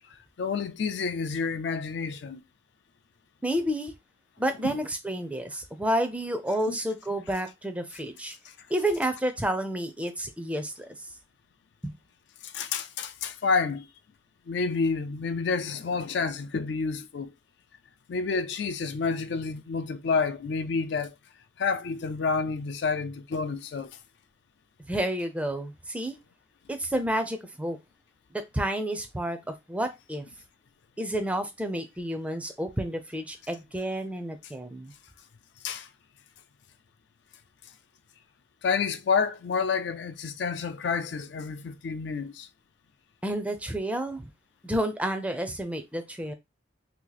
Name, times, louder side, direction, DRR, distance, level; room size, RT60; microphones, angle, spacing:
voice 1, 0.1-2.4 4.6-4.8 6.7-6.8 8.5-8.6 12.4-13.9 14.5-17.3 18.1-21.1 21.6-24.0 35.6-35.9 38.6-42.5, left 5 dB, 60° left, 0.4 m, -29 dB
voice 2, 3.4-3.9 4.4-8.4 8.7-10.9 11.8-11.9 24.9-26.2 26.7-27.8 28.3-29.4 29.7-30.3 31.0-34.9 43.2-44.3 44.6-46.3, right 1 dB, 5° right, 0.4 m, -30 dB
2.9 x 2.5 x 3.8 m
head